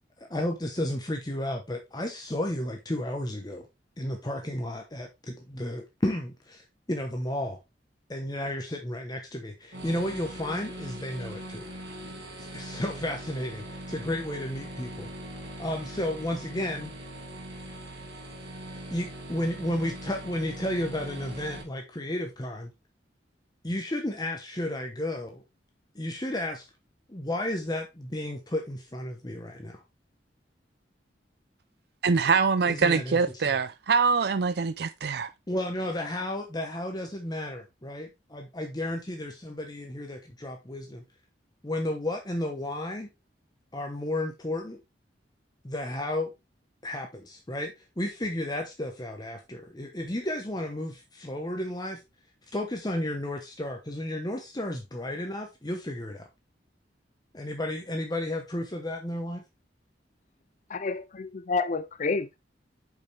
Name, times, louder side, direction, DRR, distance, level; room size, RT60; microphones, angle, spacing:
voice 1, 0.2-3.7 4.0-7.6 8.1-11.7 12.4-15.1 15.6-16.9 18.9-22.7 23.6-25.4 25.9-26.7 27.1-29.8 32.7-33.4 35.5-41.0 41.6-43.1 43.7-44.8 45.6-46.3 46.8-52.0 52.5-56.3 57.3-59.4, left 1 dB, 20° left, 0.9 m, -33 dB
sound 1, 9.7-21.6, right 1 dB, 80° right, 2.9 m, -41 dB
voice 2, 32.0-35.3, right 5 dB, 60° right, 0.5 m, -24 dB
voice 3, 60.7-62.4, left 4 dB, 45° left, 0.5 m, -29 dB
7.7 x 5.5 x 3.4 m
head